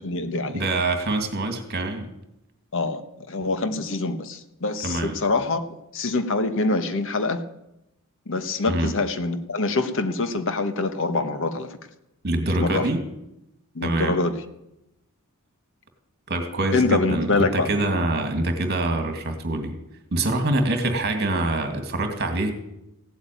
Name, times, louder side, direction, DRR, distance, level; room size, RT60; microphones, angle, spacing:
voice 1, 0.0-0.6 2.7-5.6 5.9-7.4 8.3-11.8 12.6-12.9 13.7-14.4 16.7-17.7, left 3 dB, 60° left, 9 dB, 1.3 m, -25 dB
voice 2, 0.5-2.1 4.8-5.2 8.7-8.9 12.2-13.0 13.8-14.2 16.3-19.8 20.1-22.5, right 2 dB, 45° right, 6 dB, 2.2 m, -25 dB
16.0 x 8.3 x 9.3 m, 0.86 s
head